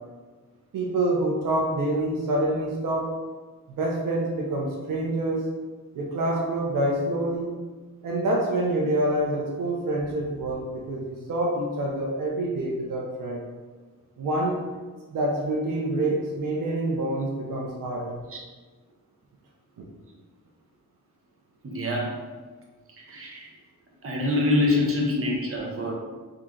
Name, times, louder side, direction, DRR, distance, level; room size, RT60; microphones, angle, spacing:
voice 1, 0.7-3.1 3.8-5.5 5.9-7.5 8.0-13.4 14.2-14.6 15.1-18.2, right 1 dB, 85° right, -2 dB, 0.7 m, -26 dB
voice 2, 21.6-22.1 23.0-23.5 24.0-25.9, left 2 dB, 45° right, -2 dB, 1.0 m, -25 dB
3.8 x 2.8 x 3.7 m, 1.4 s
cardioid pair, 95°, 32 cm